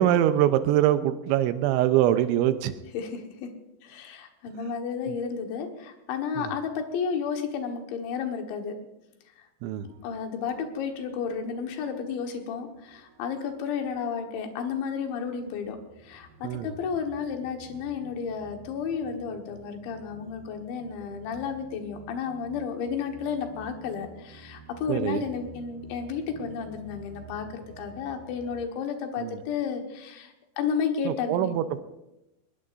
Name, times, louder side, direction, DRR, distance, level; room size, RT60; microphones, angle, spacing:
voice 1, 0.0-2.7 5.1-5.2 6.4-6.5 9.6-9.9 16.4-16.7 24.9-25.2 29.2-29.4 31.1-31.8, right 12 dB, 90° right, 10 dB, 3.2 m, -23 dB
voice 2, 2.9-3.5 3.8-8.8 9.4-9.5 10.0-15.8 16.0-31.5, left 6 dB, 80° left, 3 dB, 3.8 m, -32 dB
sound 1, 9.7-28.7, right 4 dB, 50° right, 2.6 m, -51 dB
21.0 x 20.5 x 2.6 m, 0.93 s
omnidirectional pair, 5.3 m